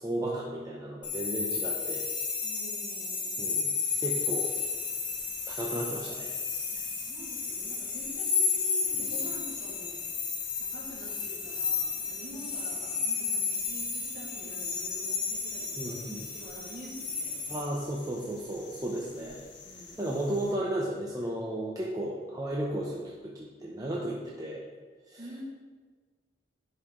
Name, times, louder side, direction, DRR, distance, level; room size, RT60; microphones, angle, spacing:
voice 1, 0.0-2.0 3.4-3.7 4.0-4.6 5.5-6.3 15.8-16.3 17.5-19.4 19.7-24.6 25.1-25.2, right 1 dB, 20° right, -4 dB, 0.7 m, -34 dB
sound 1, 1.0-17.6, left 5 dB, 25° left, 1.0 m, -32 dB
voice 2, 2.4-3.4 6.7-10.0 10.6-16.0 16.3-17.4 19.6-20.0 25.2-25.4, equal, 45° right, -5 dB, 2.2 m, -47 dB
sound 2, 3.8-20.5, left 4 dB, 70° left, 1.2 m, -50 dB
11.0 x 4.8 x 3.7 m, 1.4 s
head